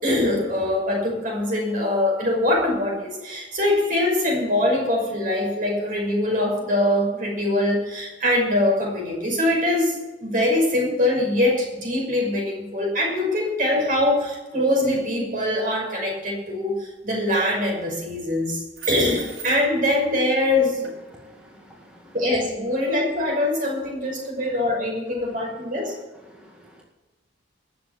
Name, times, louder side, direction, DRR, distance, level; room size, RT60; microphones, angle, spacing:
voice 1, 0.0-20.9 22.1-25.9, left 1 dB, 45° right, 1 dB, 5.8 m, -23 dB
sound 1, 18.7-19.9 20.8-20.9, right 5 dB, 90° right, 4.6 m, -36 dB
voice 2, 21.1-22.1 26.3-26.8, equal, 5° right, -2 dB, 1.9 m, -50 dB
19.5 x 7.3 x 7.8 m, 1.1 s
head